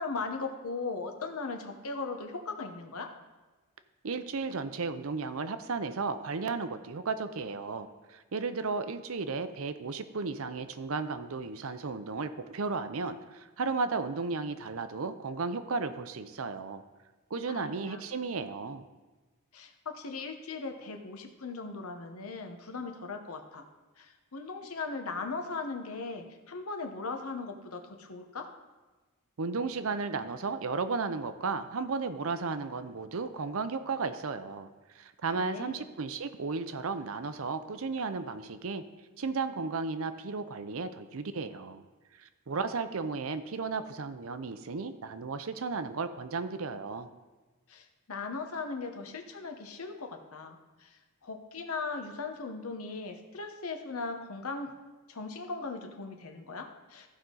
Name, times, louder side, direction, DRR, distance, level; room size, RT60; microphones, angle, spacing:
voice 1, 0.0-3.1 17.5-18.0 19.5-23.6 24.0-28.5 35.3-35.9 47.7-54.8 55.1-57.1, left 4 dB, 75° left, 5 dB, 1.0 m, -38 dB
voice 2, 4.0-16.8 17.3-18.8 29.4-34.7 34.9-38.8 39.2-41.8 42.2-47.1, right 4 dB, 65° right, 10 dB, 0.6 m, -34 dB
14.5 x 5.5 x 3.9 m, 1.2 s
head